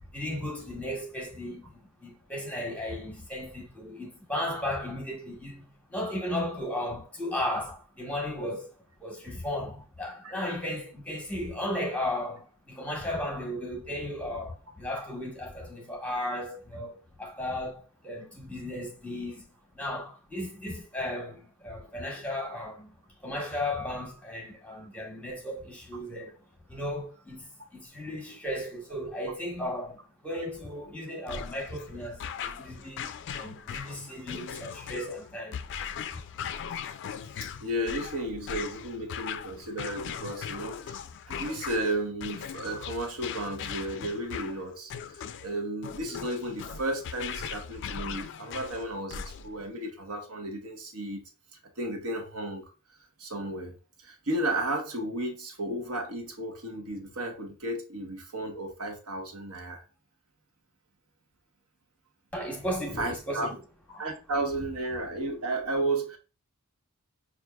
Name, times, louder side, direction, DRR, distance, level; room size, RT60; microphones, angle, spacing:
voice 1, 0.1-8.7 9.0-22.9 23.2-26.3 26.7-35.6 36.0-36.2 62.3-63.6 63.9-64.0, left 1 dB, 5° left, 1.0 m, -35 dB
sound 1, 31.3-49.7, left 7 dB, 55° left, 0.3 m, -39 dB
voice 2, 37.6-41.0 41.3-51.2 51.8-52.7 53.2-53.8 54.0-59.8 63.0-63.5 64.0-66.2, right 1 dB, 70° right, 0.9 m, -33 dB
5.8 x 2.5 x 2.2 m
head